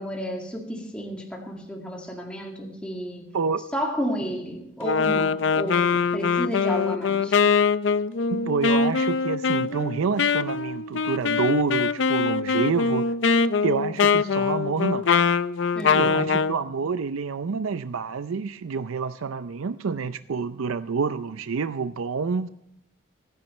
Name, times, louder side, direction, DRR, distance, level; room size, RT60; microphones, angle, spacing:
voice 1, 0.0-3.2 3.7-7.4 15.7-16.5, equal, 5° left, 0 dB, 2.0 m, -32 dB
Wind instrument woodwind instrument, 4.8-16.6, left 5 dB, 65° left, 0.5 m, -23 dB
voice 2, 8.3-13.1 13.6-15.1 16.0-22.5, right 5 dB, 85° right, 12 dB, 0.5 m, -28 dB
25.5 x 10.0 x 3.2 m, 0.83 s
head